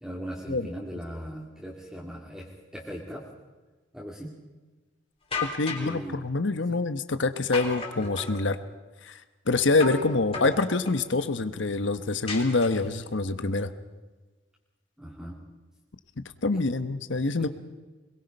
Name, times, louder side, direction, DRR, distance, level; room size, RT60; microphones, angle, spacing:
voice 1, 0.0-3.2 3.9-4.3 5.7-6.2 6.7-6.8 15.0-15.4 16.5-16.6 17.4-17.5, equal, 5° right, -4 dB, 2.5 m, -39 dB
sound 1, 5.3-6.0 7.5-8.4 9.8-10.1 10.3-11.0 12.3-13.0, left 3 dB, 30° left, 3.6 m, -34 dB
voice 2, 5.5-8.6 9.0-9.2 9.5-13.7 16.4-17.5, left 3 dB, 75° left, 11 dB, 1.1 m, -26 dB
22.5 x 22.0 x 5.4 m, 1.2 s
head